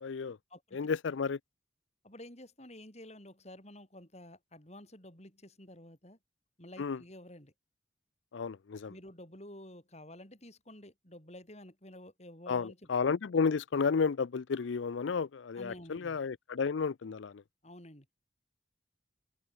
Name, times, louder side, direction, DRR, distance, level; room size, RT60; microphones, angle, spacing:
voice 1, 0.0-0.4 0.7-1.4 6.8-7.0 8.3-8.9 12.5-17.3, left 5 dB, 80° left, 0.5 m, -32 dB
voice 2, 2.0-6.2 6.6-7.5 8.9-12.9 15.5-16.2 17.6-18.1, left 1 dB, 35° left, 8.0 m, -51 dB
head